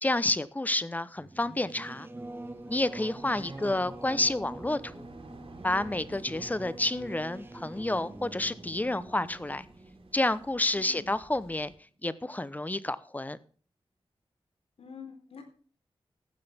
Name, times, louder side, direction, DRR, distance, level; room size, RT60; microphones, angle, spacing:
voice 1, 0.0-2.1 2.7-5.1 5.6-9.7 10.1-11.7 12.0-13.4, left 2 dB, 15° left, 0.8 m, -30 dB
Singing / Musical instrument, 1.2-11.3, right 2 dB, 20° right, 1.2 m, -45 dB
sound 1, 2.1-11.7, right 2 dB, 75° right, 4.5 m, -53 dB
voice 2, 3.2-3.7 10.7-11.1 14.8-15.4, left 5 dB, 75° left, 3.9 m, -47 dB
15.0 x 12.0 x 3.5 m
wide cardioid pair, 130°, 10 cm